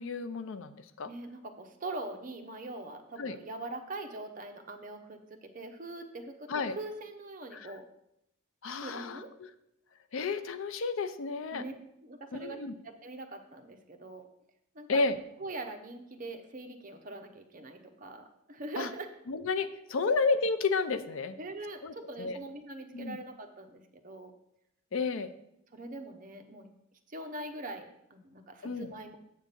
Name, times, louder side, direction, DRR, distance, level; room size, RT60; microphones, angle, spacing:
voice 1, 0.0-1.1 3.2-3.4 6.5-6.7 7.5-7.7 8.6-9.2 10.1-11.6 12.3-12.7 14.9-15.2 18.8-18.9 19.3-21.4 21.8-22.4 22.9-23.2 24.9-25.3 28.6-28.9, left 4 dB, 75° left, 12 dB, 0.5 m, -31 dB
voice 2, 1.0-7.9 8.8-9.3 11.5-11.7 12.0-12.6 13.0-14.3 14.7-15.0 15.4-19.1 21.4-24.3 25.1-25.3 25.7-26.7 27.1-29.2, right 2 dB, 40° right, 5 dB, 0.7 m, -42 dB
7.9 x 3.6 x 6.7 m, 0.80 s
head